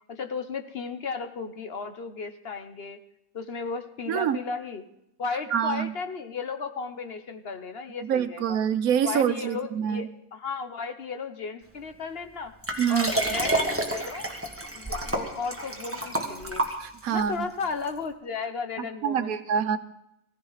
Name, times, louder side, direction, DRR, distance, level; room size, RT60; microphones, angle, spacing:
voice 1, 0.1-3.0 3.3-4.8 5.2-8.6 9.0-12.5 12.9-14.3 14.7-16.6 17.1-19.3, left 5 dB, 50° left, 8 dB, 1.0 m, -34 dB
voice 2, 5.5-5.9 8.1-10.0 12.8-13.1 16.8-17.5 19.0-19.8, right 8 dB, 90° right, 11 dB, 1.3 m, -25 dB
Liquid, 12.6-17.2 17.9-18.0, right 1 dB, 10° right, 1.5 m, -29 dB
17.0 x 15.0 x 4.0 m, 0.80 s
omnidirectional pair, 1.5 m